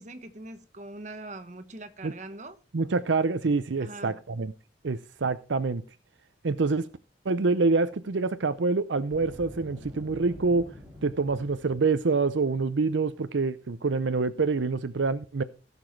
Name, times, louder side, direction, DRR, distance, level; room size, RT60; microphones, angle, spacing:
voice 1, 0.0-2.6 3.8-4.1, right 2 dB, 40° right, 1.3 m, -42 dB
voice 2, 2.7-4.5 4.8-5.8 6.4-6.9 7.2-10.7 11.0-15.4, right 3 dB, 80° right, 0.6 m, -26 dB
Boom, 9.1-12.1, left 1 dB, 10° right, 5.4 m, -46 dB
16.0 x 7.0 x 4.6 m
head